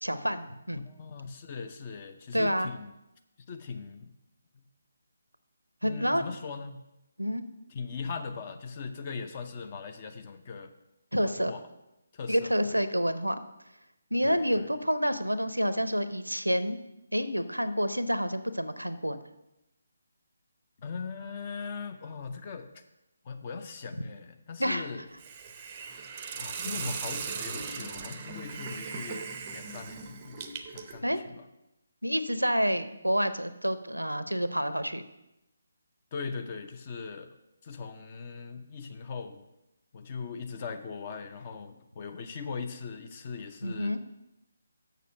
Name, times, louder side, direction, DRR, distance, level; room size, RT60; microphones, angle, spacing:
voice 1, 0.0-0.9 2.3-2.7 5.8-6.3 7.2-7.4 11.1-11.5 12.3-13.4 14.1-16.8 17.1-19.2 24.6-24.9 31.0-31.2 32.0-35.0 43.6-44.0, equal, 85° right, 12 dB, 0.7 m, -28 dB
voice 2, 0.8-2.9 3.5-4.1 5.8-6.8 7.7-10.7 11.2-11.6 12.1-12.8 14.2-14.7 20.8-22.7 23.2-25.0 26.3-30.5 30.7-31.4 36.1-37.3 37.6-39.4 39.9-43.9, left 5 dB, 30° left, 7 dB, 0.7 m, -40 dB
Hiss, 25.2-31.0, right 5 dB, 25° right, 0.6 m, -38 dB
6.7 x 6.6 x 6.4 m, 0.90 s
figure-of-eight pair, 145°, 0 cm